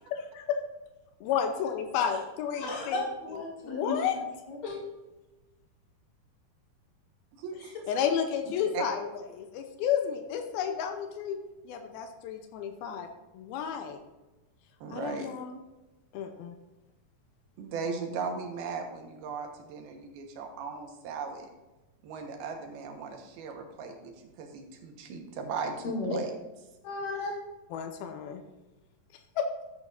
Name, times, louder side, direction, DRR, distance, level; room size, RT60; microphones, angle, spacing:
voice 1, 0.1-0.4 1.2-3.0 3.6-4.2 7.9-11.4 11.7-13.1 13.3-14.0 14.9-15.6 16.1-16.6 27.7-28.4 29.4-29.5, left 8 dB, 90° left, 5 dB, 2.7 m, -31 dB
voice 2, 2.6-4.0 4.5-4.8 25.8-26.2 26.8-27.3, left 2 dB, 65° left, -3 dB, 4.2 m, -34 dB
voice 3, 7.4-7.7 8.7-8.8 14.8-15.3 17.6-21.5 22.0-24.1 24.4-26.3, right 5 dB, 85° right, 3 dB, 3.2 m, -37 dB
13.5 x 8.4 x 2.6 m, 1.1 s
omnidirectional pair, 4.3 m